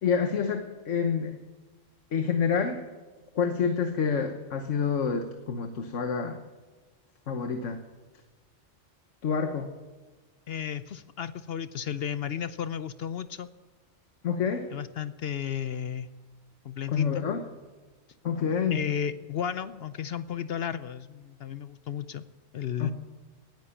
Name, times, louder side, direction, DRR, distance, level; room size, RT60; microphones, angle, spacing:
voice 1, 0.0-1.4 2.1-2.8 3.3-6.4 7.3-7.8 9.2-9.7 14.2-14.7 16.9-17.4 18.2-18.8 22.8-22.9, left 6 dB, 85° left, 6 dB, 1.4 m, -27 dB
voice 2, 10.5-13.5 14.7-16.1 16.6-17.3 18.7-22.2 22.5-22.9, left 8 dB, 60° left, 13 dB, 0.8 m, -33 dB
18.5 x 10.5 x 7.1 m, 1.3 s
omnidirectional pair, 1.3 m